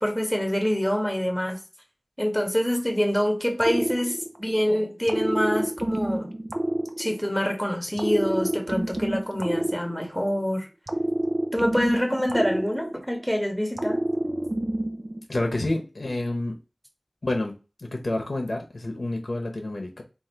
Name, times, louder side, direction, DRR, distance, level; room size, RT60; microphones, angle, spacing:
voice 1, 0.0-1.6 2.2-6.3 7.0-10.7 11.5-14.0, equal, 5° left, 1.4 m, -26 dB
sound 1, 3.6-4.6 5.1-7.5 8.0-10.4 10.9-13.3 13.8-15.2, right 1 dB, 55° right, 0.6 m, -28 dB
voice 2, 15.3-16.6 17.2-20.0, left 2 dB, 75° left, 0.8 m, -29 dB
3.8 x 2.6 x 4.4 m
wide cardioid pair, 50°, 0 cm